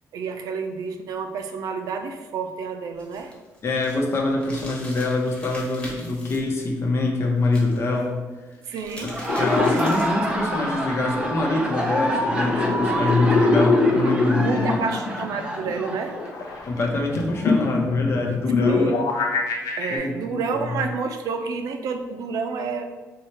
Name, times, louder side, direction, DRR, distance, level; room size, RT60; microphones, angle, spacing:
voice 1, 0.1-3.3 8.7-9.2 14.4-16.4 18.6-19.0 19.8-22.8, right 5 dB, 80° right, 6 dB, 0.4 m, -29 dB
sound 1, 3.0-6.4 7.4-8.0 8.5-10.2, left 1 dB, 15° left, 1.2 m, -42 dB
voice 2, 3.6-8.1 9.0-9.1 9.4-14.8 16.6-19.0 19.9-20.7, left 2 dB, 45° left, 0 dB, 0.8 m, -24 dB
Laughter, 8.9-16.6, right 1 dB, 15° right, 0.6 m, -28 dB
sound 2, 9.3-20.0, left 3 dB, 80° left, 0.7 m, -24 dB
4.6 x 2.3 x 4.2 m, 1.2 s
cardioid pair, 125°, 6 cm